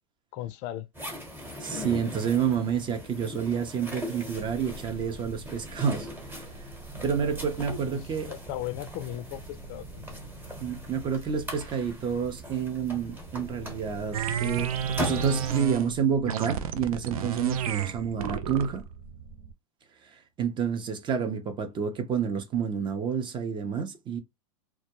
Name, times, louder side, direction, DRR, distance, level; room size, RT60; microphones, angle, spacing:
voice 1, 0.3-0.9 7.6-10.2, left 13 dB, 45° left, 0.4 m, -37 dB
sound 1, 0.9-15.6, left 1 dB, 10° right, 1.0 m, -40 dB
voice 2, 1.6-6.1 7.0-8.3 10.6-18.9 20.1-24.2, right 7 dB, 25° right, 0.6 m, -29 dB
sound 2, 4.3-19.5, right 3 dB, 55° right, 1.2 m, -46 dB
sound 3, 14.1-15.9 16.3-18.8, right 9 dB, 80° right, 0.4 m, -31 dB
2.3 x 2.1 x 2.9 m
hypercardioid pair, 105°, 18 cm